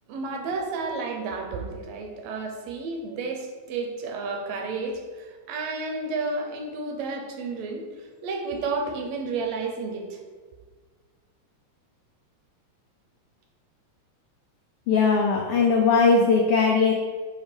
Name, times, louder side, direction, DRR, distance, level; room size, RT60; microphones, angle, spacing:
voice 1, 0.1-7.8 8.2-10.2, right 3 dB, 75° right, 3 dB, 1.9 m, -31 dB
voice 2, 14.9-16.9, left 4 dB, 85° left, 1 dB, 1.2 m, -19 dB
5.7 x 5.1 x 4.4 m, 1.5 s
omnidirectional pair, 3.3 m